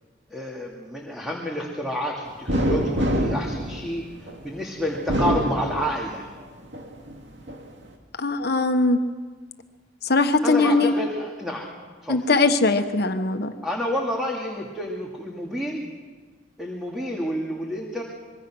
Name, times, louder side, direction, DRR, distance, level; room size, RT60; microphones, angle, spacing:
voice 1, 0.3-6.3 10.4-11.7 12.0-12.2 13.6-15.8 16.6-18.0, equal, ahead, -2 dB, 2.5 m, -29 dB
sound 1, 2.5-4.4 4.9-6.3 6.7-7.6, equal, 65° right, 2.8 m, -25 dB
voice 2, 8.2-9.0 10.0-10.9 12.1-13.5, left 3 dB, 60° left, 7 dB, 1.3 m, -20 dB
26.0 x 23.0 x 6.2 m, 1.5 s
head